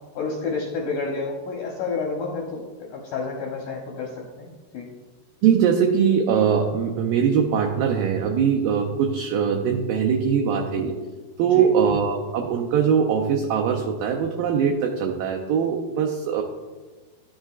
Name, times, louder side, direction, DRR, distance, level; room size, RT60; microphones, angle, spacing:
voice 1, 0.2-2.6 2.9-4.1 4.4-4.9 11.4-11.7, left 4 dB, 75° left, -1 dB, 1.8 m, -29 dB
voice 2, 5.4-10.9 11.4-16.4, right 7 dB, 80° right, 2 dB, 2.0 m, -21 dB
11.5 x 6.3 x 2.4 m, 1.3 s
omnidirectional pair, 4.5 m